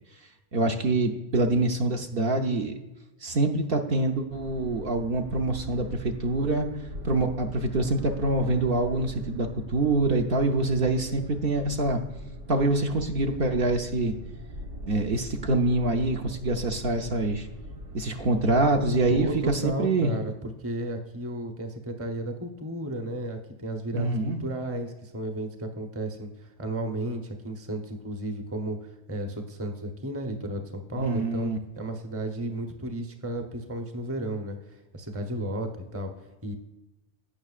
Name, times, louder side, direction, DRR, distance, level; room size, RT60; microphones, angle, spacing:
voice 1, 0.5-2.7 3.2-6.7 7.0-12.0 12.5-14.1 14.9-17.5 17.9-20.2 23.9-24.4 31.0-31.6, right 2 dB, 55° right, 3 dB, 0.9 m, -25 dB
sound 1, 4.3-19.7, equal, 90° right, 1.5 m, -41 dB
voice 2, 19.1-36.6, right 1 dB, 15° right, 4 dB, 0.7 m, -34 dB
16.5 x 6.0 x 2.4 m, 1.1 s
omnidirectional pair, 1.2 m